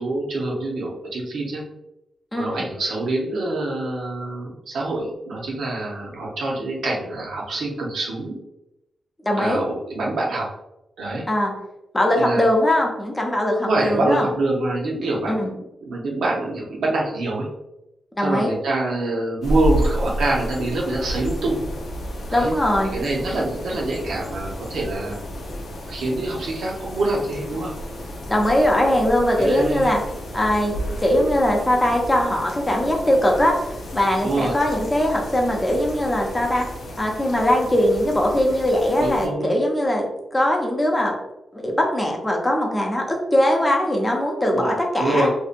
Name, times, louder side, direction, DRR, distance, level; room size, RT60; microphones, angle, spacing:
voice 1, 0.0-1.6 2.3-8.4 9.4-10.5 11.0-11.3 12.2-12.5 13.6-15.5 15.8-17.5 18.2-21.7 22.3-22.5 22.9-25.2 25.9-27.7 29.3-29.9 34.2-34.5 39.0-39.5 44.5-45.3, right 2 dB, 90° right, -2 dB, 0.6 m, -25 dB
voice 2, 9.2-9.6 11.3-11.5 11.9-14.3 15.3-15.5 18.1-18.5 22.3-22.9 28.3-30.0 30.3-30.7 31.0-36.6 37.0-41.1 41.5-45.3, left 1 dB, 15° left, 0 dB, 0.5 m, -20 dB
sound 1, 19.4-39.3, equal, 65° left, 0.5 m, -31 dB
2.6 x 2.1 x 2.5 m, 0.90 s
wide cardioid pair, 145°, 0 cm